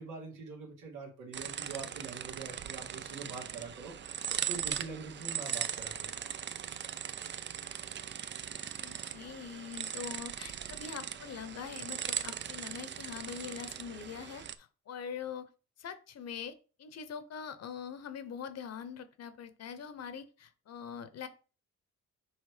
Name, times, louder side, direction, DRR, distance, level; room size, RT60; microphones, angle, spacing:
voice 1, 0.0-6.1, right 4 dB, 85° right, 0 dB, 2.3 m, -44 dB
sound 1, 1.3-14.5, right 9 dB, 40° right, 0.5 m, -39 dB
voice 2, 8.8-15.5 15.8-21.3, left 7 dB, 55° left, 11 dB, 1.0 m, -43 dB
6.4 x 3.2 x 5.0 m, 0.36 s
cardioid pair, 90°, 30 cm